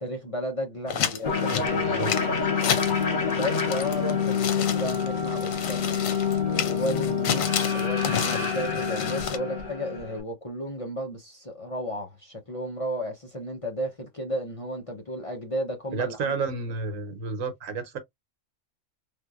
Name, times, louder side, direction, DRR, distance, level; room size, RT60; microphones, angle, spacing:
voice 1, 0.0-2.1 3.3-5.9 6.6-7.5 7.7-16.4, equal, 30° left, 0.7 m, -33 dB
sound 1, 0.9-3.0 3.3-9.4, left 8 dB, 85° left, 1.1 m, -31 dB
sound 2, 1.2-10.2, left 6 dB, 60° left, 1.6 m, -27 dB
voice 2, 1.5-2.1 15.9-18.0, right 4 dB, 80° right, 1.3 m, -31 dB
3.4 x 2.7 x 2.4 m
omnidirectional pair, 1.4 m